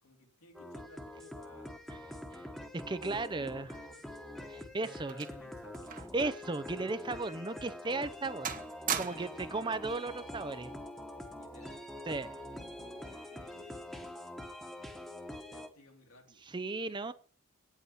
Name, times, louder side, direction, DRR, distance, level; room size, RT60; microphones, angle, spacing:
voice 1, 0.0-1.7 2.8-4.4 4.9-6.1 9.0-9.8 11.3-12.7 13.2-13.9 15.3-16.4, left 1 dB, 80° left, 1 dB, 3.3 m, -59 dB
sound 1, 0.5-15.7, left 1 dB, ahead, 1.2 m, -45 dB
voice 2, 2.9-3.7 4.5-5.2 6.1-8.5 9.0-10.7 12.1-12.3 16.5-17.1, right 3 dB, 20° right, 12 dB, 0.5 m, -35 dB
sound 2, 4.1-6.3 6.5-6.7 7.3-7.5 7.9-8.2 8.4-9.5 10.5-10.8, right 8 dB, 35° right, 0.9 m, -39 dB
9.5 x 8.3 x 5.8 m, 0.42 s
head